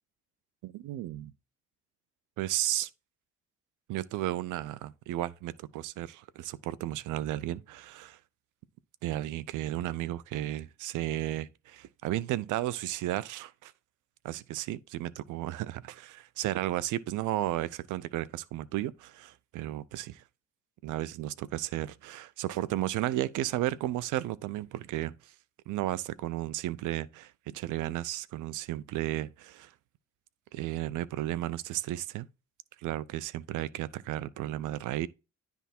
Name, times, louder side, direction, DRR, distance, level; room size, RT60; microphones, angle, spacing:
voice 1, 0.6-1.3 2.4-2.9 3.9-8.2 9.0-13.7 14.2-20.2 20.8-25.1 25.7-29.7 30.5-32.3 32.8-35.1, right 14 dB, 90° right, 0.6 m, -34 dB
10.0 x 3.5 x 4.3 m
cardioid pair, 90°, 30 cm